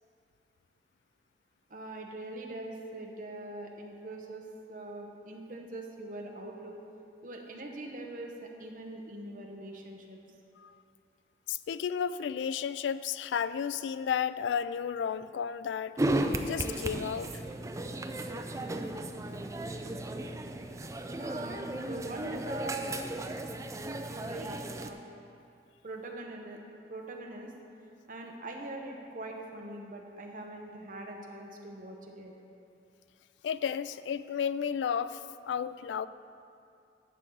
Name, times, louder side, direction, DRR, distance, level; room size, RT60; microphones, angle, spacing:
voice 1, 1.7-4.4 4.7-6.8 7.2-10.2 21.2-23.1 24.0-25.0 25.8-26.6 26.9-27.5 28.1-32.3, right 1 dB, 50° right, 1 dB, 1.0 m, -42 dB
voice 2, 11.5-16.0 16.5-17.4 33.4-36.1, left 7 dB, 85° left, 15 dB, 0.3 m, -33 dB
sound 1, 16.0-24.9, right 1 dB, 15° right, 0.4 m, -35 dB
11.5 x 8.2 x 3.9 m, 2.5 s
head